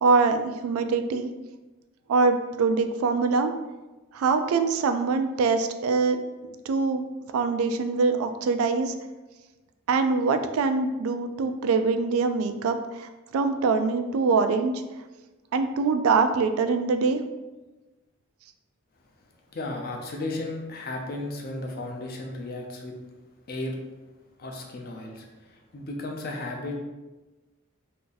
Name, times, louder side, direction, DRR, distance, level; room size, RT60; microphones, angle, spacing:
voice 1, 0.0-1.3 2.1-3.5 4.1-6.2 6.7-7.0 7.3-8.9 9.9-14.8 15.5-17.2, right 4 dB, 85° right, 8 dB, 0.3 m, -24 dB
voice 2, 19.2-23.0 23.5-23.8 24.4-26.8, left 2 dB, 45° left, 1 dB, 0.5 m, -35 dB
2.7 x 2.5 x 3.9 m, 1.1 s
head